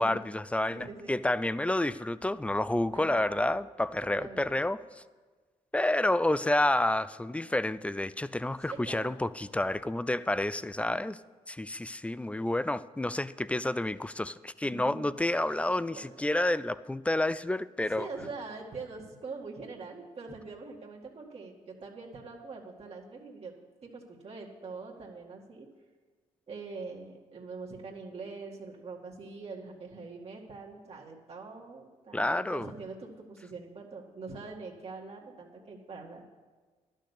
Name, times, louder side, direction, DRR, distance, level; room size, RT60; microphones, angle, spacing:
voice 1, 0.0-5.0 5.7-11.2 11.5-18.1 32.1-32.7, left 1 dB, 10° left, 17 dB, 0.4 m, -29 dB
voice 2, 0.7-1.2 2.9-3.5 4.0-4.6 8.7-9.1 14.6-15.1 15.9-16.0 17.8-23.5 23.8-25.7 26.5-36.2, right 4 dB, 50° right, -2 dB, 2.0 m, -43 dB
11.5 x 6.5 x 8.2 m, 1.4 s
supercardioid pair, 70°, 14 cm